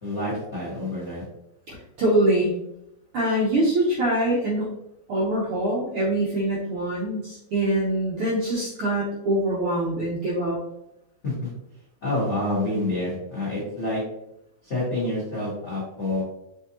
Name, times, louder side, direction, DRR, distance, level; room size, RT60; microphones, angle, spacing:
voice 1, 0.0-1.2 11.2-11.5 12.0-14.0 14.6-16.2, left 1 dB, 55° left, -7 dB, 0.7 m, -28 dB
voice 2, 1.7-2.5 3.1-4.7 5.1-10.6, right 1 dB, 75° right, -5 dB, 1.3 m, -24 dB
6.1 x 2.6 x 2.8 m, 0.83 s
omnidirectional pair, 3.5 m